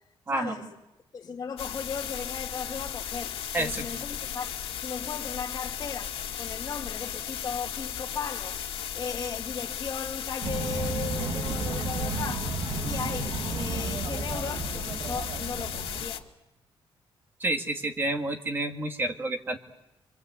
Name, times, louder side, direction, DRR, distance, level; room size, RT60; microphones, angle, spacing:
voice 1, 0.3-0.7 1.1-4.5 4.8-8.6 8.9-12.5 12.8-16.2, left 6 dB, 35° left, 1.8 m, -37 dB
sound 1, 1.6-16.2, left 9 dB, 75° left, 2.3 m, -36 dB
voice 2, 3.5-3.8 17.4-19.6, right 2 dB, 20° right, 2.1 m, -29 dB
sound 2, 10.4-16.1, right 3 dB, 50° right, 2.5 m, -33 dB
26.0 x 25.5 x 8.1 m
wide cardioid pair, 180°, 10 cm